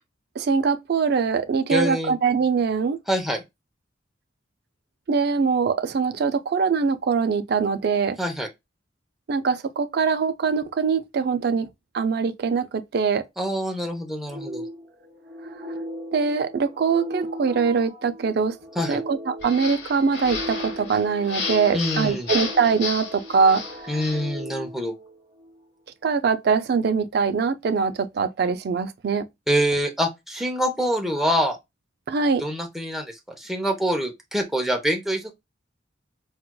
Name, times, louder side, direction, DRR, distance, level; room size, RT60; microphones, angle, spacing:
voice 1, 0.4-3.0 5.1-8.2 9.3-11.7 11.9-13.3 16.1-18.5 18.9-23.6 26.0-29.2 32.1-32.4, right 5 dB, 60° right, 0.4 m, -23 dB
voice 2, 1.7-2.2 3.1-3.4 8.2-8.5 13.4-14.6 18.8-19.0 21.7-22.3 23.9-25.0 29.5-31.6 32.4-35.3, equal, ahead, 0.6 m, -25 dB
sound 1, 14.3-25.6, equal, 35° right, 1.7 m, -38 dB
sound 2, 19.4-24.3, left 4 dB, 70° left, 0.9 m, -33 dB
4.4 x 2.2 x 2.2 m
head